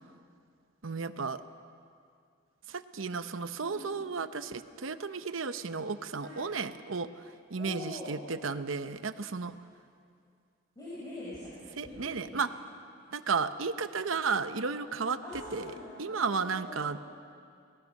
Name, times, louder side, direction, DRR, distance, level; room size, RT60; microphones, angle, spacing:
voice 1, 0.8-1.4 2.7-7.2 7.5-9.6 11.8-12.5 13.1-15.2 15.5-17.0, right 5 dB, 85° right, 11 dB, 0.8 m, -33 dB
voice 2, 7.6-8.2 10.8-12.4 14.8-16.9, left 1 dB, 20° left, -10 dB, 6.1 m, -44 dB
25.5 x 18.5 x 6.5 m, 2.4 s
head